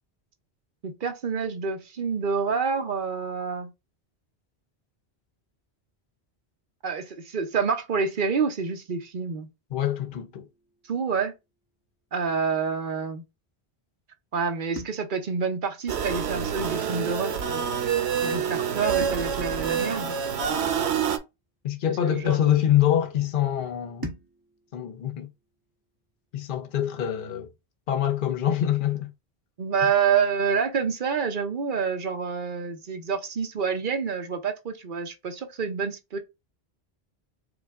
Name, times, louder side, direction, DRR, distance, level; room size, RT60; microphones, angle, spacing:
voice 1, 0.8-3.7 6.8-9.5 10.8-11.3 12.1-13.2 14.3-17.6 18.2-20.1 22.0-22.5 29.6-36.2, right 6 dB, 55° right, 0.9 m, -28 dB
voice 2, 9.7-10.4 21.6-24.1 24.7-25.3 26.3-27.5 27.9-29.1, left 11 dB, 55° left, 0.9 m, -25 dB
sound 1, 10.1-12.3 14.7-17.1 19.0-21.5 24.0-26.6, right 1 dB, 20° right, 1.1 m, -46 dB
sound 2, 15.9-21.2, right 7 dB, 85° right, 1.0 m, -27 dB
5.0 x 2.3 x 3.5 m
omnidirectional pair, 1.1 m